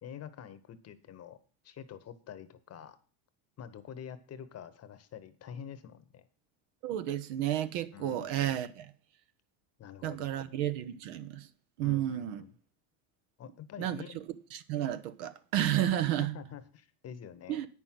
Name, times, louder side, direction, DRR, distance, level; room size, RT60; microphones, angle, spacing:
voice 1, 0.0-1.4 1.6-3.0 3.6-6.3 7.9-8.6 9.8-10.5 11.8-12.5 13.4-14.2 16.2-17.6, left 8 dB, 30° left, 1.0 m, -47 dB
voice 2, 6.8-8.9 10.0-11.5 11.8-12.4 13.8-14.0 14.5-16.4 17.5-17.7, right 12 dB, 65° right, 1.2 m, -31 dB
9.4 x 6.0 x 7.4 m
supercardioid pair, 130°, 49 cm